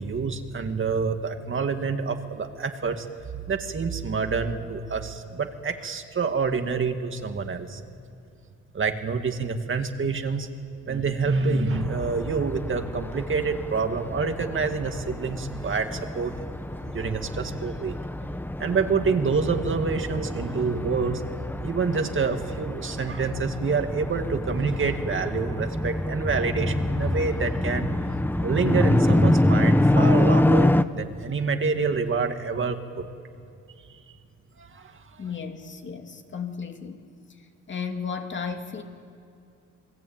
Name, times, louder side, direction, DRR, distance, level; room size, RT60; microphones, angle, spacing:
voice 1, 0.0-3.1 3.5-7.8 8.7-10.5 10.9-16.3 16.9-18.0 18.6-21.2 21.6-27.9 28.4-33.1 33.9-34.0 34.6-35.2, right 5 dB, 40° right, 6 dB, 2.2 m, -27 dB
sound 1, 11.7-30.8, left 1 dB, 5° left, 0.9 m, -26 dB
voice 2, 35.2-37.0 37.7-38.8, left 6 dB, 40° left, 4 dB, 2.6 m, -34 dB
28.0 x 20.0 x 9.0 m, 2.6 s
cardioid pair, 90°, 30 cm